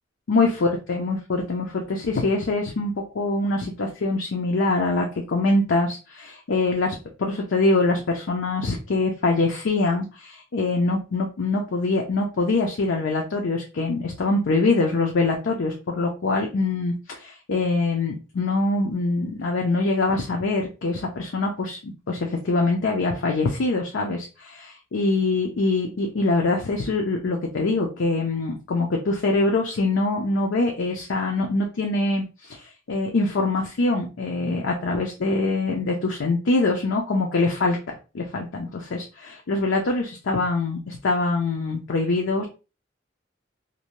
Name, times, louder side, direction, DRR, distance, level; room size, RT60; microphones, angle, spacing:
voice 1, 0.3-32.6 32.9-37.8 38.1-42.5, left 3 dB, 90° left, 0 dB, 0.5 m, -24 dB
2.6 x 2.1 x 2.9 m, 0.31 s
head